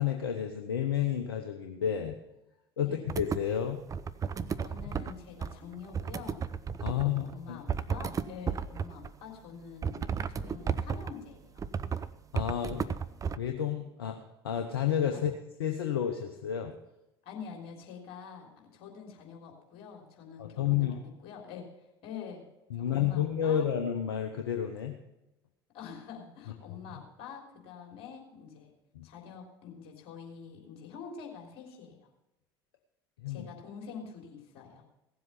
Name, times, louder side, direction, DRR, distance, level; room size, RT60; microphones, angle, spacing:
voice 1, 0.0-2.2 2.8-3.8 6.8-7.6 12.3-12.9 13.3-14.2 14.4-15.3 15.6-16.7 20.4-21.0 22.7-25.0 26.7-27.0 28.9-29.1 33.2-33.5, left 9 dB, 75° left, 4 dB, 0.9 m, -31 dB
sound 1, 3.1-3.4 3.9-5.1 5.4-7.3 7.7-9.1 9.8-11.1 11.6-12.1 12.4-13.4, right 6 dB, 25° right, 0.6 m, -33 dB
voice 2, 4.5-6.4 6.9-11.5 12.7-12.9 15.1-15.2 17.2-21.7 22.0-22.5 22.8-23.7 25.7-28.7 29.0-32.1 33.3-34.8, left 6 dB, 55° left, 0 dB, 3.5 m, -46 dB
17.0 x 7.7 x 5.7 m, 0.93 s
figure-of-eight pair, 65°, 13 cm